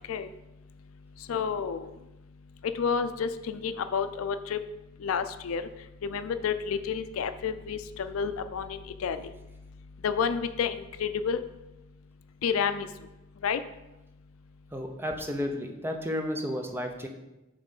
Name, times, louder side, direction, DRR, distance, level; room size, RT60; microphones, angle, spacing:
voice 1, 1.3-1.9 2.7-4.6 5.0-5.7 6.0-9.2 10.0-11.4 12.4-12.9 13.4-13.6, left 6 dB, 75° left, 11 dB, 0.4 m, -30 dB
voice 2, 14.7-17.1, left 1 dB, 10° right, 3 dB, 0.6 m, -32 dB
7.3 x 3.2 x 5.3 m, 0.98 s
head